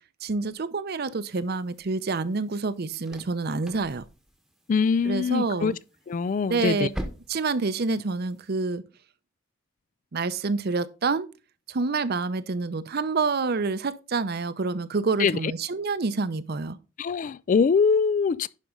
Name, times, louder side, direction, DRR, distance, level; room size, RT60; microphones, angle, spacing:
voice 1, 0.2-4.0 5.0-5.8 6.5-6.9 7.3-8.8 10.1-11.3 11.7-16.8, right 4 dB, 50° right, 0.6 m, -27 dB
sound 1, 1.4-8.5, equal, ahead, 1.0 m, -44 dB
voice 2, 4.7-5.7 6.1-6.9 15.2-15.4 17.0-18.5, left 5 dB, 40° left, 0.3 m, -23 dB
10.5 x 5.3 x 3.7 m
head